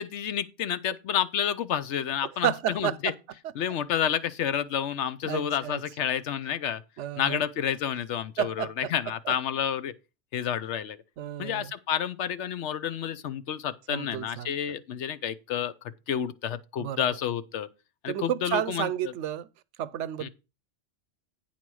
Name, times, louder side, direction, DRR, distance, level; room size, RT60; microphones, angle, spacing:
voice 1, 0.0-3.1 3.6-6.8 7.2-9.9 10.3-11.0 11.4-15.7 16.1-17.7 18.0-19.1 20.2-20.3, left 9 dB, 80° left, 1.0 m, -30 dB
voice 2, 2.4-3.0 5.2-5.8 7.0-7.4 8.4-8.7 9.3-9.4 11.2-11.7 13.9-14.5 16.8-17.1 18.1-19.5 19.8-20.3, right 10 dB, 90° right, 1.0 m, -31 dB
8.8 x 4.3 x 6.2 m
omnidirectional pair, 1.2 m